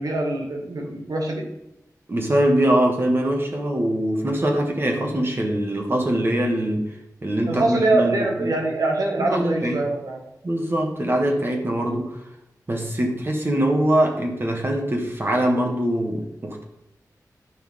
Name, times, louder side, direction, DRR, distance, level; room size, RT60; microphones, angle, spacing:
voice 1, 0.0-1.5 7.5-10.2, right 2 dB, 65° right, 1 dB, 1.9 m, -23 dB
voice 2, 2.1-6.9 7.2-8.6 9.2-9.8 10.4-12.2 12.7-16.6, right 1 dB, 35° right, 2 dB, 1.8 m, -23 dB
11.5 x 5.8 x 3.6 m, 0.87 s
wide cardioid pair, 100°, 7 cm